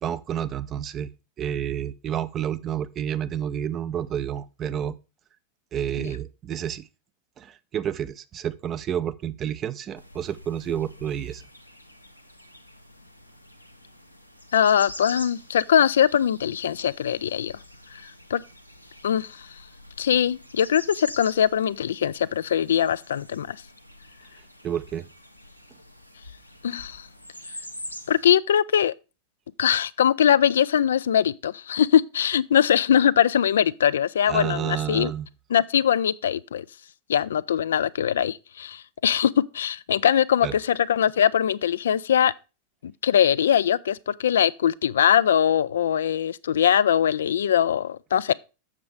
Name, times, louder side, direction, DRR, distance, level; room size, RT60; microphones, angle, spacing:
voice 1, 0.0-1.1 1.4-5.0 5.7-6.9 7.4-11.4 24.6-25.0 34.3-35.3 40.4-40.6, right 9 dB, 30° right, 0.6 m, -30 dB
sound 1, 10.0-28.2, left 1 dB, 90° left, 0.8 m, -45 dB
voice 2, 14.5-17.5 18.0-18.4 19.0-19.5 20.0-23.6 26.6-27.1 28.1-28.9 29.6-35.1 35.5-36.6 37.1-42.3 42.8-48.3, left 9 dB, 65° left, 0.3 m, -22 dB
7.4 x 6.8 x 4.8 m
figure-of-eight pair, 90°, 0 cm